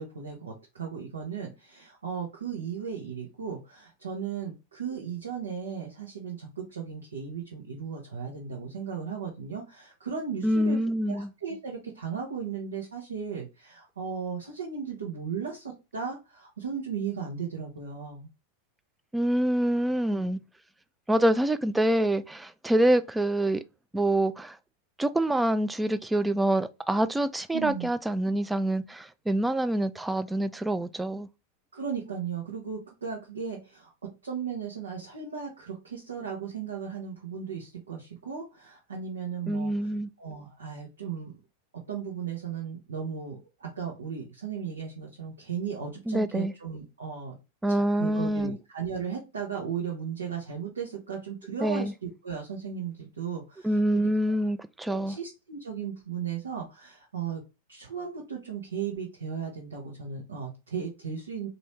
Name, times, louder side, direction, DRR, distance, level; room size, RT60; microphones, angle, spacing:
voice 1, 0.0-10.8 11.1-18.3 27.5-27.9 31.7-33.9 34.2-39.9 40.2-41.3 41.9-47.4 47.7-53.7 54.0-54.1 54.8-57.4 57.7-61.5, right 6 dB, 70° right, 1.1 m, -36 dB
voice 2, 10.4-11.3 19.1-20.4 21.1-23.6 23.9-24.6 25.0-31.3 39.5-40.1 46.1-46.5 47.6-48.6 51.6-51.9 53.6-55.2, right 1 dB, 5° right, 0.3 m, -26 dB
4.0 x 2.7 x 3.2 m
figure-of-eight pair, 90°, 0 cm